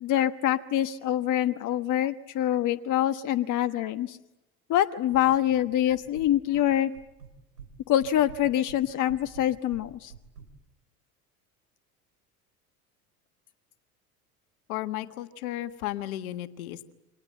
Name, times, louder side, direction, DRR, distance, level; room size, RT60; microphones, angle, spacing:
voice 1, 0.0-4.2 4.7-6.9 7.9-10.1, left 12 dB, 40° left, 9 dB, 1.3 m, -25 dB
sound 1, 5.1-5.6 5.9-6.7 6.9-7.7 8.0-10.5, right 7 dB, 85° right, 3.8 m, -47 dB
voice 2, 14.7-16.9, left 14 dB, 65° left, 10 dB, 1.8 m, -34 dB
29.0 x 25.5 x 7.8 m, 0.92 s
figure-of-eight pair, 70°, 45 cm